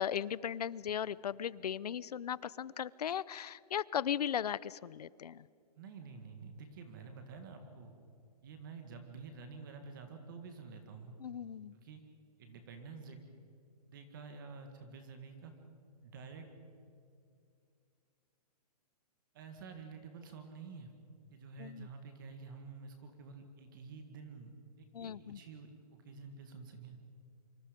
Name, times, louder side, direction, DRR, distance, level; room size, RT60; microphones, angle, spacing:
voice 1, 0.0-5.5 11.2-11.7 21.6-21.9 24.9-25.4, left 9 dB, 75° left, 21 dB, 0.7 m, -37 dB
voice 2, 5.8-7.9 8.4-11.2 11.7-12.0 12.4-13.2 13.9-15.5 16.0-16.5 19.3-20.9 21.3-27.0, right 4 dB, 30° right, 6 dB, 1.9 m, -49 dB
25.5 x 25.0 x 5.2 m, 2.4 s
hypercardioid pair, 175°, 20 cm